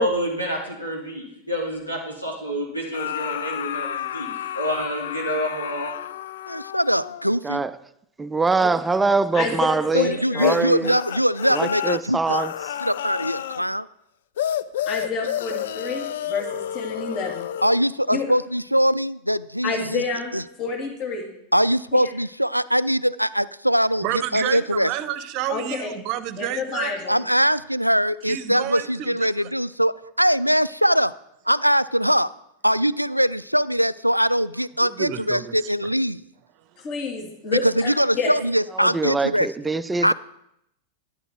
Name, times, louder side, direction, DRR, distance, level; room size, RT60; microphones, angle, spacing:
voice 1, 0.0-5.9, equal, 85° left, 3.5 m, -28 dB
sound 1, 2.9-7.4 10.4-13.7 14.4-17.8, left 11 dB, 60° left, 0.4 m, -30 dB
voice 2, 6.5-7.6 9.9-12.5 12.8-13.9 17.6-20.0 20.3-20.4 21.5-24.9 27.1-31.2 31.5-32.3 32.6-36.2 37.6-39.5 40.0-40.1, equal, 90° right, 0.3 m, -22 dB
voice 3, 8.2-10.1 10.4-11.0 11.5-12.5 38.8-40.1, right 4 dB, 10° right, 0.5 m, -23 dB
voice 4, 9.3-10.6 14.9-17.5 18.1-18.2 19.6-20.3 20.6-21.3 21.9-22.0 25.5-25.9 26.4-27.2 36.8-37.9 38.1-38.3, left 4 dB, 40° left, 2.7 m, -28 dB
voice 5, 24.0-26.9 28.3-29.5 34.8-35.5, right 12 dB, 40° right, 0.8 m, -30 dB
11.0 x 11.0 x 4.6 m
figure-of-eight pair, 90°, 0 cm